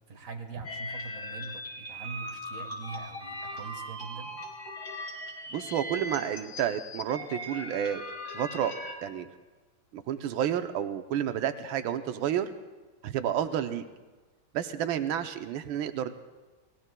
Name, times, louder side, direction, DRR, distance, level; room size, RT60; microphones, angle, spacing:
voice 1, 0.1-4.4, right 4 dB, 45° right, 4 dB, 1.7 m, -42 dB
sound 1, 0.6-8.9, left 1 dB, 75° left, 3.8 m, -39 dB
voice 2, 5.5-8.0 8.3-8.7 9.0-9.3 9.9-12.5 13.0-13.8 14.5-16.1, right 10 dB, 90° right, 8 dB, 1.5 m, -30 dB
29.5 x 20.0 x 2.2 m, 1.3 s
omnidirectional pair, 2.1 m